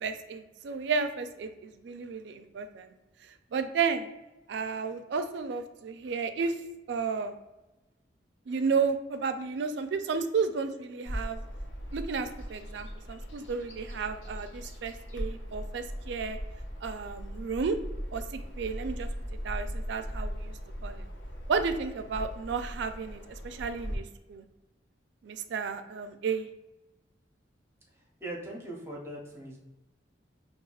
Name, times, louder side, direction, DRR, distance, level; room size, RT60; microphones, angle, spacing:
voice 1, 0.0-2.9 3.5-4.1 4.5-6.6 6.9-7.3 8.5-11.4 11.9-16.4 16.8-17.8 18.1-19.1 19.4-20.5 20.8-21.1 21.5-24.4 25.2-26.5, right 5 dB, 70° right, 9 dB, 0.4 m, -32 dB
Bird vocalization bird call bird song, 11.1-24.0, equal, 80° left, 0.7 m, -39 dB
voice 2, 27.9-29.6, right 1 dB, 15° right, -3 dB, 0.7 m, -41 dB
5.5 x 2.4 x 2.3 m, 1.0 s
head